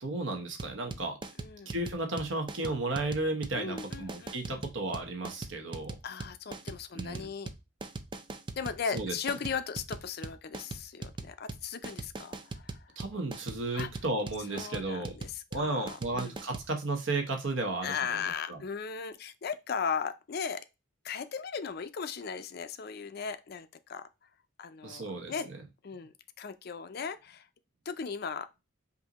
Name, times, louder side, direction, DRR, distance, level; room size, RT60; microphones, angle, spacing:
voice 1, 0.0-1.2 1.7-5.9 6.9-7.3 8.9-9.1 13.0-15.1 15.5-18.6 24.8-25.6, right 2 dB, 65° right, 1.0 m, -34 dB
sound 1, 0.6-16.7, right 3 dB, 25° right, 0.4 m, -41 dB
voice 2, 1.4-1.7 3.6-4.6 6.0-7.5 8.6-12.9 13.7-13.9 14.5-16.4 17.8-20.7 21.0-24.1 24.6-25.0 25.3-25.5 25.8-27.5 27.9-28.5, left 6 dB, 50° left, 0.4 m, -37 dB
5.6 x 2.6 x 2.9 m
head